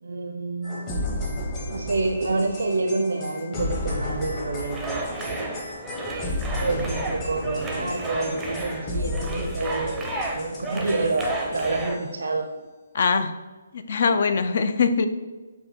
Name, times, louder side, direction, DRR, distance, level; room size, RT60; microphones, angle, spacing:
voice 1, 0.0-0.8 1.6-5.6 6.6-12.5, right 3 dB, 75° right, 4 dB, 0.5 m, -28 dB
sound 1, 0.6-12.0, left 1 dB, 30° left, 1.0 m, -33 dB
sound 2, 4.7-12.0, right 2 dB, 10° right, 0.5 m, -32 dB
voice 2, 12.9-13.4 13.7-15.1, left 5 dB, 55° left, 10 dB, 0.4 m, -22 dB
5.3 x 2.3 x 4.3 m, 1.3 s
hypercardioid pair, 150°, 0 cm